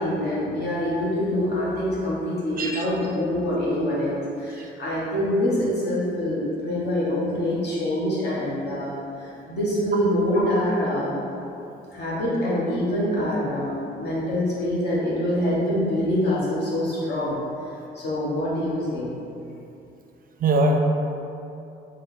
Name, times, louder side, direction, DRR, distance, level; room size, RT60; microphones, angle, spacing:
voice 1, 0.0-11.3 11.9-19.2, left 1 dB, 55° left, -7 dB, 1.4 m, -25 dB
voice 2, 20.4-20.8, right 2 dB, 45° right, 2 dB, 0.5 m, -21 dB
3.3 x 3.2 x 3.8 m, 2.7 s
cardioid pair, 90°, 20 cm